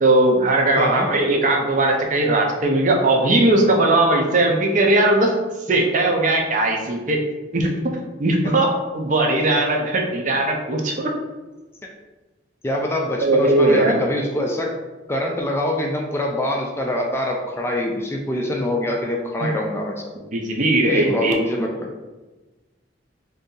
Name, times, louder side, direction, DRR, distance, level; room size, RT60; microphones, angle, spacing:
voice 1, 0.0-5.4 5.7-7.2 7.5-11.1 13.2-14.0 19.4-19.5 20.3-21.3, right 2 dB, 45° right, 1 dB, 0.5 m, -19 dB
voice 2, 0.8-1.2 12.6-20.0 20.8-21.9, left 1 dB, 15° left, 0 dB, 0.3 m, -24 dB
2.6 x 2.6 x 3.7 m, 1.2 s
head